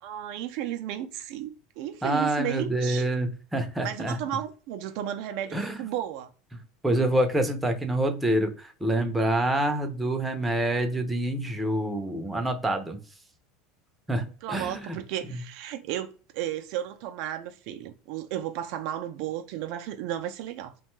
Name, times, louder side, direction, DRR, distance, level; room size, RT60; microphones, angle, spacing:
voice 1, 0.0-3.1 3.8-6.3 14.4-20.7, right 11 dB, 60° right, 0.3 m, -34 dB
voice 2, 2.0-4.2 5.5-5.8 6.8-13.0 14.1-14.8, right 1 dB, 10° right, 0.5 m, -26 dB
2.6 x 2.2 x 3.0 m
supercardioid pair, 130°, 0 cm